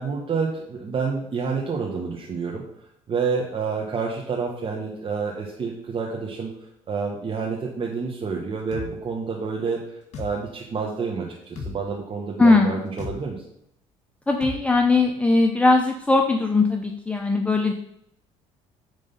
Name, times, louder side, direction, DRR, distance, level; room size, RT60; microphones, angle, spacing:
voice 1, 0.0-2.6 3.1-6.5 6.9-13.4, right 5 dB, 40° right, -2 dB, 1.5 m, -28 dB
sound 1, 8.7-8.9 10.1-10.3 11.6-11.8 13.0-13.2 14.4-14.6, left 5 dB, 55° left, 2.2 m, -34 dB
voice 2, 12.4-12.8 14.3-17.7, left 3 dB, 10° left, 3 dB, 0.8 m, -19 dB
9.0 x 3.8 x 5.6 m, 0.76 s
supercardioid pair, 80°, 14 cm